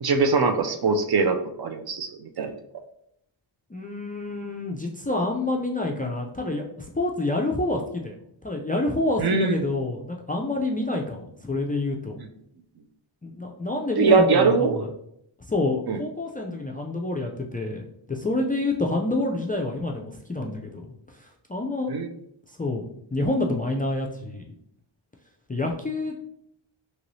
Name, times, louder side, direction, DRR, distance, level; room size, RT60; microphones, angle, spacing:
voice 1, 0.0-2.5 9.2-9.6 14.0-14.8 15.9-16.0 21.9-22.1, right 4 dB, 55° right, 5 dB, 0.5 m, -22 dB
voice 2, 3.7-8.2 8.4-12.2 13.2-14.8 15.5-20.9 21.2-21.9 22.6-22.8 23.1-24.5 25.5-26.1, left 2 dB, 20° left, 0 dB, 0.3 m, -28 dB
3.0 x 2.9 x 2.6 m, 0.72 s
wide cardioid pair, 70°, 48 cm